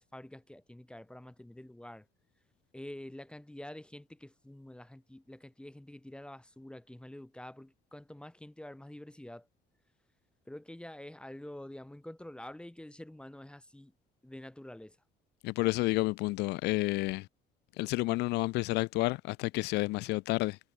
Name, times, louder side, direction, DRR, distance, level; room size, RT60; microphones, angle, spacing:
voice 1, 0.0-2.1 2.7-9.5 10.5-13.9 14.2-15.0, left 1 dB, 5° left, 2.8 m, -47 dB
voice 2, 15.4-17.3 17.8-20.6, left 21 dB, 90° left, 0.6 m, -30 dB
cardioid pair, 110°, 17 cm